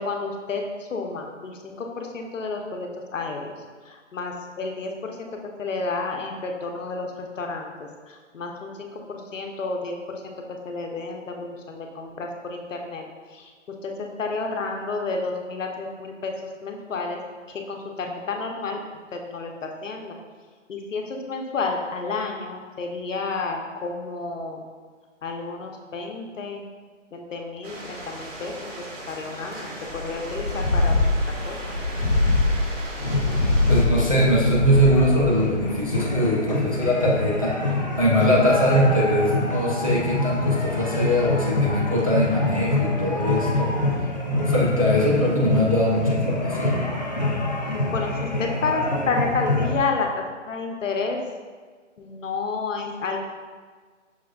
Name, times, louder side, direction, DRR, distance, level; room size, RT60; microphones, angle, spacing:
voice 1, 0.0-3.5 3.8-5.3 5.6-10.3 10.6-13.5 13.8-16.3 16.6-17.2 17.5-18.8 19.1-20.2 20.7-24.6 25.2-26.7 27.1-30.9 31.4-31.8 47.9-50.1 50.5-51.2 52.0-53.3, left 4 dB, 75° left, 2 dB, 0.8 m, -30 dB
sound 1, 27.6-33.9, right 1 dB, 80° right, 1.3 m, -37 dB
sound 2, 29.9-36.0, left 2 dB, 5° left, 0.8 m, -23 dB
sound 3, 33.0-49.7, left 2 dB, 40° left, 0.4 m, -26 dB
voice 2, 33.7-43.7 44.3-46.8, equal, 30° right, -5 dB, 0.4 m, -22 dB
6.0 x 3.6 x 2.3 m, 1.5 s
hypercardioid pair, 170°, 38 cm